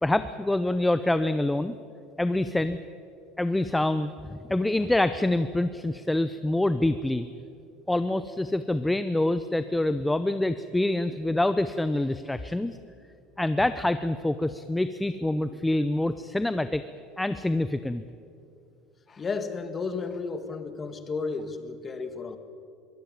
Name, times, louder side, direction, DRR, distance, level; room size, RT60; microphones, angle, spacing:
voice 1, 0.0-1.8 2.2-2.8 3.4-7.3 7.9-12.8 13.4-16.8 17.2-18.0, left 1 dB, 5° left, 12 dB, 0.6 m, -26 dB
voice 2, 19.1-22.4, left 4 dB, 25° left, 9 dB, 1.9 m, -33 dB
22.5 x 16.0 x 9.4 m, 2.5 s
cardioid pair, 135°, 0 cm